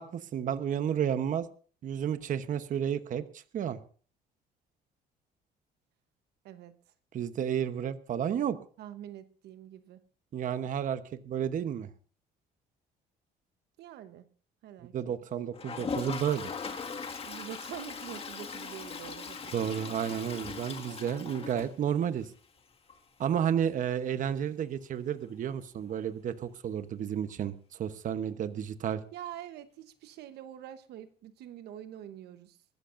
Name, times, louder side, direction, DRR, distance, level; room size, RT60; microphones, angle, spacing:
voice 1, 0.0-1.5 1.8-3.8 7.1-8.6 10.3-11.9 14.9-16.5 19.5-22.3 23.2-27.5 27.8-29.0, right 9 dB, 50° right, 11 dB, 1.0 m, -31 dB
voice 2, 8.8-10.0 13.8-14.2 14.6-14.9 17.2-19.5 29.1-32.6, right 11 dB, 75° right, 10 dB, 1.0 m, -45 dB
Toilet flush, 15.5-22.3 22.6-22.7 22.9-23.0 23.2-23.3 25.9-26.0 27.3-27.4, left 5 dB, 35° left, 1.8 m, -40 dB
23.5 x 13.5 x 2.6 m, 0.41 s
cardioid pair, 110°, 17 cm